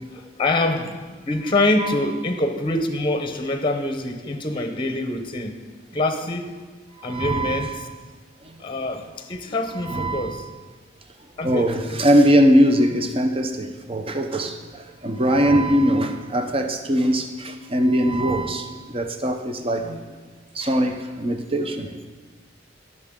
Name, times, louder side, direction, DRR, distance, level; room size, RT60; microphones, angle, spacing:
voice 1, 0.0-5.6 5.9-6.5 7.0-7.7 8.6-10.4 11.4-12.0, left 2 dB, 25° left, 7 dB, 0.8 m, -25 dB
voice 2, 7.0-7.7 9.8-10.3 11.4-20.0 20.6-21.9, equal, 30° right, 6 dB, 0.7 m, -21 dB
17.5 x 6.7 x 3.7 m, 1.4 s
head